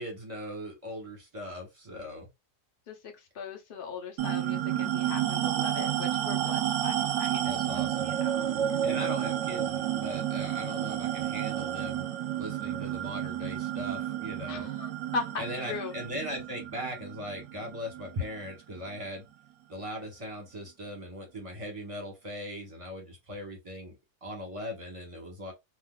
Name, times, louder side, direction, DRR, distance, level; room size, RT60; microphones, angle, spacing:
voice 1, 0.0-2.3 6.4-6.5 7.4-8.1 8.8-12.0 12.4-14.7 15.4-19.2 19.7-23.9 24.2-25.5, equal, 25° right, 1.0 m, -39 dB
voice 2, 2.9-7.5 8.0-8.5 14.5-15.9, left 4 dB, 50° left, 0.8 m, -39 dB
sound 1, 4.2-19.0, right 11 dB, 65° right, 0.8 m, -31 dB
3.7 x 2.4 x 2.3 m
omnidirectional pair, 1.5 m